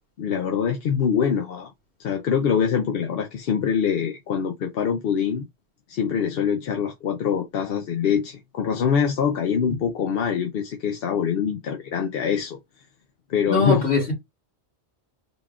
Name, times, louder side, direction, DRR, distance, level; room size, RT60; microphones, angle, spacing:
voice 1, 0.2-1.7 2.0-5.5 5.9-12.6 13.3-13.9, left 7 dB, 65° left, 0.8 m, -24 dB
voice 2, 13.5-14.1, left 4 dB, 85° left, 2.1 m, -21 dB
3.9 x 2.3 x 3.6 m
omnidirectional pair, 1.1 m